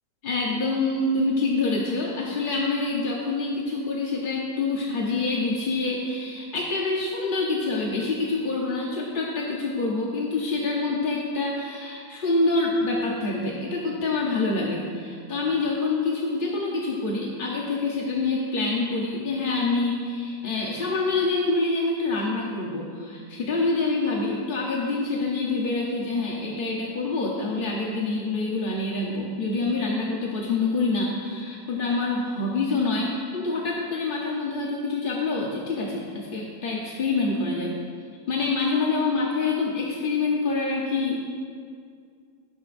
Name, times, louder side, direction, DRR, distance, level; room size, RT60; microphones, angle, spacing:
voice 1, 0.2-37.8 38.3-41.2, left 3 dB, 40° left, -3 dB, 0.9 m, -26 dB
13.5 x 12.0 x 2.6 m, 2.2 s
omnidirectional pair, 1.7 m